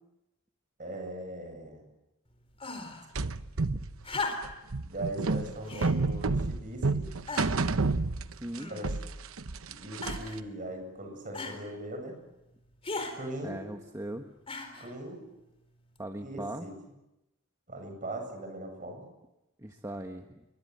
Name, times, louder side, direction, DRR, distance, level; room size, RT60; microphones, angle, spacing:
voice 1, 0.8-1.8 4.7-7.1 8.7-8.9 9.5-12.1 13.1-13.7 14.8-15.2 16.2-16.8 17.7-19.0, right 1 dB, 40° right, 5 dB, 8.0 m, -40 dB
sound 1, 2.6-3.1 4.0-4.7 5.7-6.0 6.7-6.8 7.3-7.7 8.6-9.1 10.0-10.4 11.3-11.6 12.8-13.2 14.5-14.9 16.0-16.1, left 3 dB, 25° left, 4.2 m, -37 dB
sound 2, 3.2-8.6 8.8-10.4, right 3 dB, 70° right, 0.9 m, -30 dB
voice 2, 8.4-8.7 13.4-14.2 16.0-16.7 19.6-20.4, right 1 dB, 15° right, 4 dB, 1.3 m, -39 dB
28.5 x 23.5 x 8.0 m, 0.94 s
head